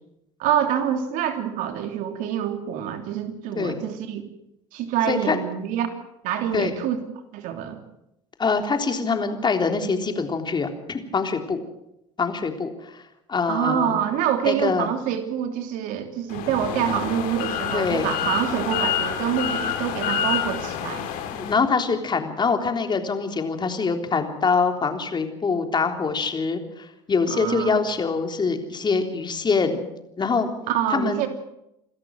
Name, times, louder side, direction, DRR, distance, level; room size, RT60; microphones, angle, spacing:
voice 1, 0.4-4.2 4.7-5.9 6.2-7.0 7.3-7.8 13.5-21.1 27.3-27.8 30.7-31.3, right 9 dB, 65° right, 7 dB, 3.2 m, -26 dB
voice 2, 5.1-5.4 6.5-6.7 8.4-11.6 12.2-13.0 13.3-13.9 14.5-14.9 17.7-18.1 21.3-29.9 30.2-30.5 30.9-31.3, left 4 dB, 30° left, 5 dB, 3.6 m, -24 dB
sound 1, 16.3-21.5, left 9 dB, 65° left, 3.0 m, -28 dB
27.0 x 13.5 x 7.7 m, 0.84 s
hypercardioid pair, 70°, 15 cm